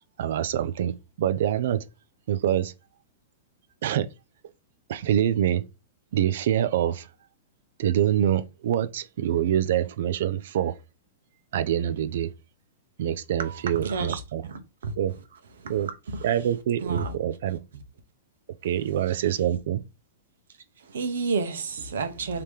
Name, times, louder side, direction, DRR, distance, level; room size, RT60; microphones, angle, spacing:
voice 1, 0.2-1.9 2.3-2.7 3.8-4.1 4.9-5.6 6.1-7.1 7.8-10.8 11.5-12.3 13.0-14.4 15.0-15.1 15.7-15.9 16.2-17.6 18.6-19.8, right 10 dB, 65° right, 0.5 m, -25 dB
voice 2, 13.4-14.2 14.5-14.9 15.6-16.2 16.8-17.2 17.7-17.8 20.8-22.4, right 4 dB, 90° right, 0.9 m, -31 dB
3.4 x 2.9 x 4.7 m
hypercardioid pair, 150°, 0 cm